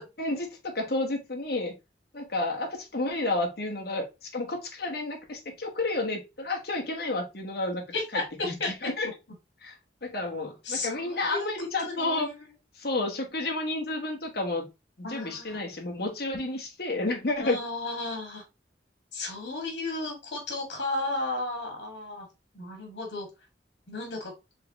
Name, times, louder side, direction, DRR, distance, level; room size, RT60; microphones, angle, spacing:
voice 1, 0.2-1.7 2.1-7.8 8.1-9.1 9.6-9.7 10.0-12.3 12.8-14.6 15.0-17.6, left 2 dB, 60° left, 1.2 m, -31 dB
voice 2, 7.9-8.2 8.6-8.7 10.7-11.5 11.8-12.3 15.0-15.6 17.4-18.4 19.1-22.3 22.5-23.3 23.9-24.3, left 2 dB, 75° left, 2.0 m, -33 dB
4.7 x 3.4 x 3.0 m
head